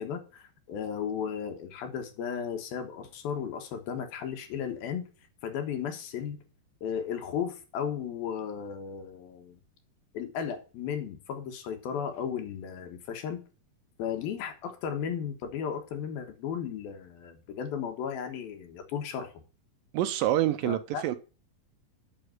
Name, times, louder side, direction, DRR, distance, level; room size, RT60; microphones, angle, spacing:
voice 1, 0.0-5.0 5.4-6.4 6.8-9.6 10.1-13.4 14.0-19.3 20.7-21.0, left 7 dB, 80° left, 3.2 m, -35 dB
voice 2, 19.9-21.2, right 13 dB, 75° right, 2.2 m, -27 dB
7.7 x 6.6 x 7.8 m
omnidirectional pair, 4.3 m